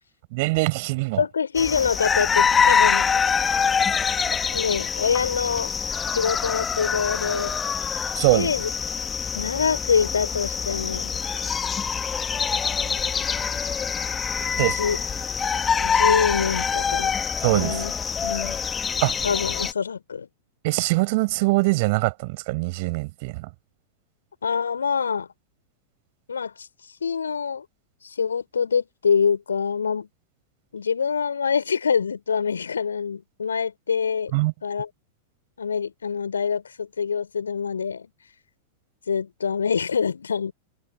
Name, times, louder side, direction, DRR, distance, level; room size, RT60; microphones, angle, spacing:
voice 1, 0.3-1.2 8.2-8.5 14.6-14.8 17.4-17.8 19.0-19.1 20.6-23.5 34.3-34.5, right 25 dB, 50° right, 7.5 m, -23 dB
voice 2, 1.2-3.1 4.5-5.8 6.1-7.5 8.3-8.7 9.3-11.2 14.6-15.0 15.5-17.2 17.5-17.9 18.2-18.6 19.2-20.3 24.4-25.3 26.3-26.7 27.0-27.6 28.0-30.1 30.7-34.3 34.6-34.9 35.6-38.1 39.1-40.5, left 6 dB, 75° left, 4.7 m, -25 dB
sound 1, 1.5-19.7, left 6 dB, 20° left, 2.6 m, -25 dB
figure-of-eight pair, 95°, 0 cm